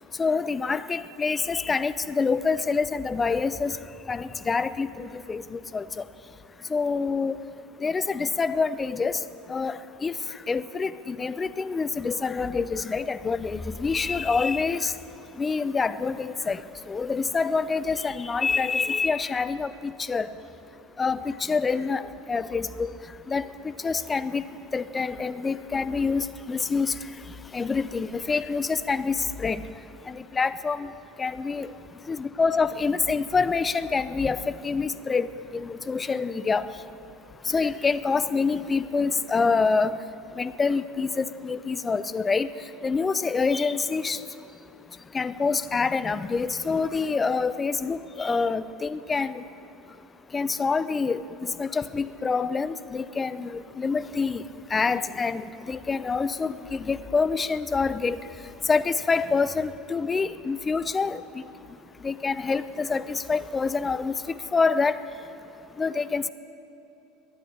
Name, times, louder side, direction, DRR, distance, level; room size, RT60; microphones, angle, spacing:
voice 1, 0.2-3.7 4.1-5.8 6.7-7.4 7.8-9.2 9.5-10.1 10.5-14.9 15.4-16.6 16.9-20.3 21.0-22.0 22.3-22.9 23.3-23.4 23.8-24.4 24.7-26.9 27.5-29.6 30.1-30.9 31.2-31.7 32.1-35.3 35.5-36.7 37.5-40.0 40.4-42.5 42.8-44.2 45.1-49.4 50.3-54.4 54.7-58.2 58.7-61.2 62.0-64.1 64.5-65.0 65.8-66.3, left 4 dB, 25° left, 15 dB, 0.6 m, -26 dB
12.0 x 10.0 x 10.0 m, 2.9 s
hypercardioid pair, 80°, 0 cm